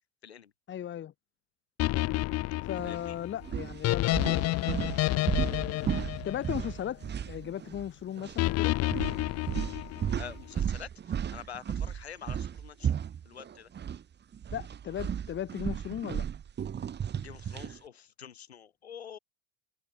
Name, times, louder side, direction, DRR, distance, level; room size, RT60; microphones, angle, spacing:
voice 1, 0.7-1.1 2.6-7.0 7.3-8.8 14.5-16.2, left 10 dB, 40° left, 2.3 m, -37 dB
sound 1, 1.8-7.1 8.4-10.3, left 18 dB, 55° left, 3.4 m, -30 dB
voice 2, 2.8-3.1 10.2-10.9 11.3-12.9 13.3-13.7 17.1-19.2, left 8 dB, 90° left, 5.5 m, -46 dB
sound 2, 2.8-3.0 3.4-7.9 8.2-8.4 8.9-14.0 14.3-17.8, right 8 dB, 35° right, 3.7 m, -34 dB
hypercardioid pair, 80°, 31 cm